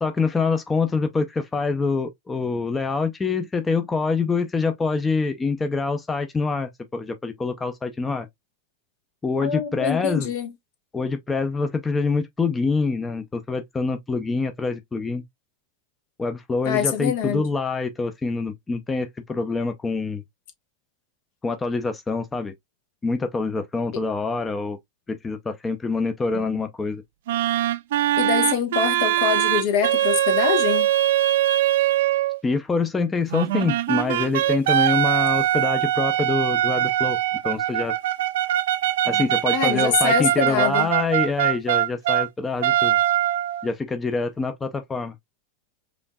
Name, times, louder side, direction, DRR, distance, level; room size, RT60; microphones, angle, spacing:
voice 1, 0.0-8.3 9.2-10.3 10.9-15.2 16.2-20.2 21.4-22.5 23.0-24.8 25.1-27.0 32.4-37.2 37.4-37.9 39.0-43.0 43.6-45.1, left 4 dB, 15° left, 0.5 m, -25 dB
voice 2, 9.4-10.5 16.6-17.4 26.3-26.6 28.2-30.9 39.5-40.9, left 7 dB, 60° left, 1.0 m, -24 dB
sound 1, 27.3-32.4 33.3-42.3 42.6-43.7, right 13 dB, 70° right, 0.3 m, -22 dB
5.0 x 2.5 x 2.2 m
hypercardioid pair, 95°, 0 cm